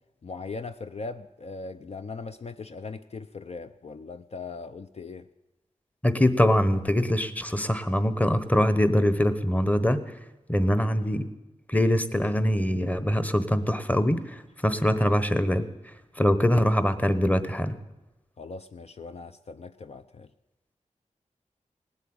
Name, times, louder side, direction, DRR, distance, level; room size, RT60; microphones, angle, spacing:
voice 1, 0.2-5.3 18.4-20.3, left 4 dB, 55° left, 9 dB, 0.5 m, -39 dB
voice 2, 6.0-10.2 10.5-11.3 11.7-17.8, equal, 10° left, 12 dB, 1.0 m, -23 dB
18.5 x 8.3 x 8.7 m, 1.0 s
wide cardioid pair, 75°, 13 cm